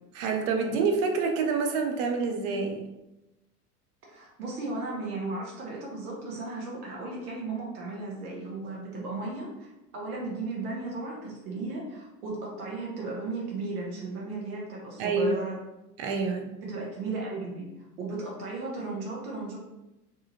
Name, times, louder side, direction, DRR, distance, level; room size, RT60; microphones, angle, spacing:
voice 1, 0.1-2.9 15.0-15.3 16.0-16.5, right 4 dB, 40° right, 3 dB, 0.5 m, -27 dB
voice 2, 4.1-15.6 16.6-17.7 18.0-19.6, right 3 dB, 65° right, -3 dB, 0.8 m, -35 dB
2.7 x 2.3 x 2.7 m, 0.98 s
figure-of-eight pair, 75°, 47 cm